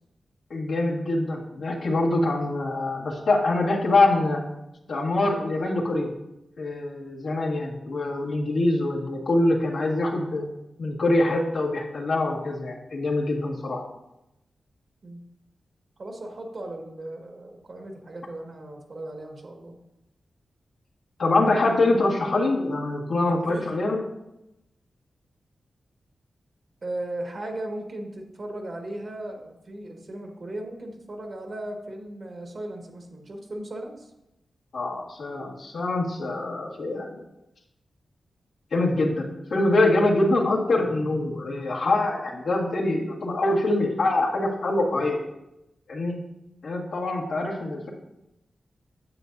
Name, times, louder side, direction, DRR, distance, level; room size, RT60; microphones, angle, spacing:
voice 1, 0.5-4.4 4.9-6.1 6.6-10.4 10.8-13.8 21.2-24.0 34.7-37.2 38.7-45.2 45.9-46.2 46.6-47.9, left 2 dB, 80° left, -3 dB, 1.8 m, -24 dB
voice 2, 16.0-19.8 23.3-23.8 26.8-34.1, right 1 dB, 55° right, 2 dB, 1.7 m, -37 dB
9.6 x 8.0 x 2.7 m, 0.89 s
cardioid pair, 75°, 0 cm